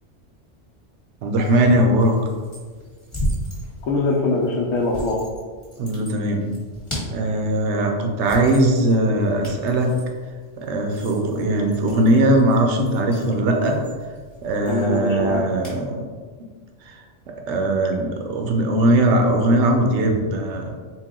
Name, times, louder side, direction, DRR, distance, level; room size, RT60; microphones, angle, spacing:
voice 1, 1.2-2.2 5.8-6.6 7.1-10.0 10.6-13.8 14.4-16.1 16.8-17.0 17.3-20.7, right 1 dB, 75° right, 2 dB, 0.9 m, -20 dB
sound 1, 1.3-15.8, equal, 25° left, 1.2 m, -36 dB
voice 2, 3.8-5.2 14.7-15.4, left 3 dB, 80° left, -4 dB, 0.9 m, -22 dB
4.0 x 2.2 x 3.6 m, 1.5 s
omnidirectional pair, 1.2 m